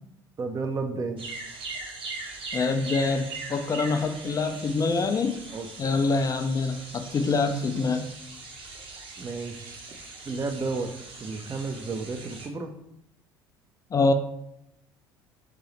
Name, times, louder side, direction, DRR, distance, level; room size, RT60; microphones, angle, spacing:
voice 1, 0.4-1.2 5.5-5.7 9.2-9.8 10.3-10.9 11.2-12.7, right 4 dB, 25° right, 6 dB, 0.5 m, -32 dB
sound 1, 1.2-12.5, right 3 dB, 45° right, 1.0 m, -41 dB
voice 2, 2.5-5.4 5.8-8.1 13.9-14.1, left 3 dB, 30° left, 7 dB, 0.4 m, -25 dB
3.7 x 2.7 x 3.1 m, 0.81 s
figure-of-eight pair, 60°, 13 cm